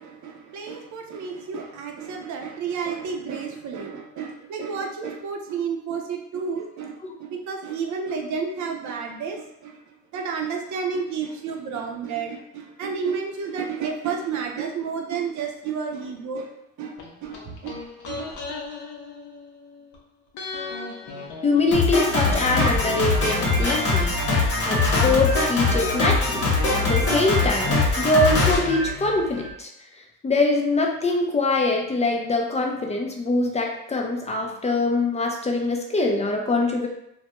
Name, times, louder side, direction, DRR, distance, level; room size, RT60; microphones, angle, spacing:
voice 1, 0.0-9.8 10.1-16.5 16.8-18.4, right 5 dB, 70° right, 2 dB, 0.5 m, -31 dB
sound 1, 17.0-20.0 20.3-24.2 24.4-24.5, left 3 dB, 75° left, 0.6 m, -38 dB
voice 2, 21.4-29.7 30.2-36.9, left 2 dB, 25° left, 1 dB, 0.3 m, -23 dB
Drum kit, 21.7-29.5, left 3 dB, 50° left, 0.9 m, -22 dB
2.2 x 2.2 x 2.8 m, 0.83 s
cardioid pair, 90°, 30 cm